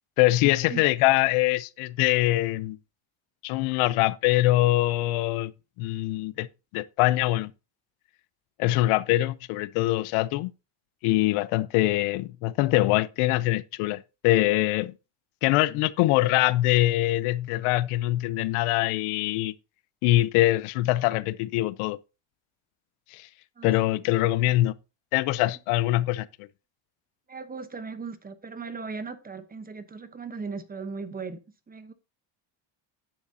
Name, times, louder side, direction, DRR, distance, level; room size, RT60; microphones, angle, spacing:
voice 1, 0.2-2.8 3.4-5.5 5.8-6.5 6.7-7.5 8.6-10.5 11.0-14.9 15.4-19.5 20.0-22.0 23.1-23.3 23.6-24.7 25.1-26.5, left 17 dB, 80° left, 0.7 m, -23 dB
voice 2, 27.3-31.4 31.7-31.9, right 4 dB, 20° right, 0.9 m, -38 dB
10.0 x 9.3 x 2.8 m
cardioid pair, 140°, 50 cm